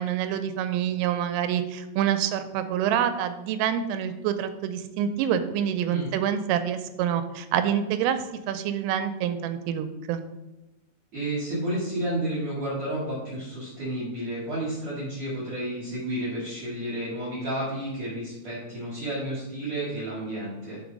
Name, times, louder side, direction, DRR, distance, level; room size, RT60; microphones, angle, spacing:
voice 1, 0.0-8.2 8.5-10.2, right 9 dB, 90° right, 9 dB, 3.2 m, -27 dB
voice 2, 11.1-20.8, right 1 dB, 45° right, -7 dB, 2.7 m, -31 dB
7.0 x 4.7 x 5.2 m, 1.0 s
omnidirectional pair, 5.7 m